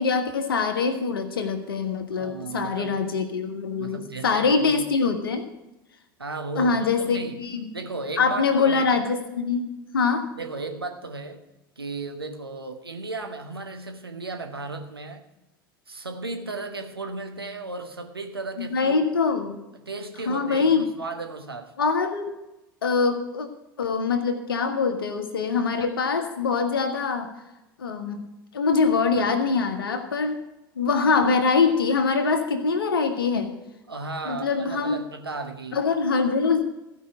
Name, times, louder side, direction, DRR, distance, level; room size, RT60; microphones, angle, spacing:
voice 1, 0.0-5.5 6.5-7.7 8.2-10.3 18.6-19.6 20.3-20.8 21.8-22.4 22.8-23.5 23.8-27.3 27.8-28.3 28.5-30.4 30.8-33.5 34.2-35.0 35.7-36.6, left 4 dB, 75° left, 7 dB, 1.4 m, -24 dB
voice 2, 2.1-3.0 3.8-4.8 6.2-7.4 7.7-8.8 10.4-11.4 11.8-15.2 15.9-19.1 19.8-21.7 29.3-29.4 33.9-35.8, right 3 dB, 85° right, 5 dB, 1.1 m, -35 dB
15.5 x 5.5 x 7.8 m, 0.97 s
figure-of-eight pair, 80°, 12 cm